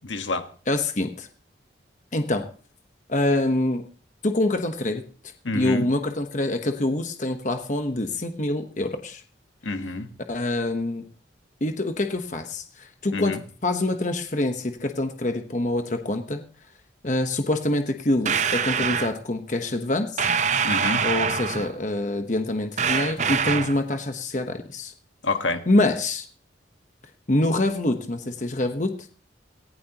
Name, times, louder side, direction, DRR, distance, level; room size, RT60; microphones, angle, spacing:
voice 1, 0.1-0.5 5.4-5.9 9.6-10.1 13.1-13.4 20.6-21.0 25.2-25.6, left 3 dB, 80° left, 7 dB, 1.4 m, -27 dB
voice 2, 0.7-1.3 2.1-2.5 3.1-3.8 4.2-5.0 5.5-9.2 10.3-11.0 11.6-16.4 17.0-20.3 21.0-24.9 25.7-26.2 27.3-28.9, left 1 dB, 40° left, 6 dB, 1.0 m, -25 dB
sound 1, 18.2-19.1 20.2-21.8 22.8-23.8, right 6 dB, 40° right, 0.6 m, -24 dB
18.0 x 15.5 x 2.9 m, 0.42 s
head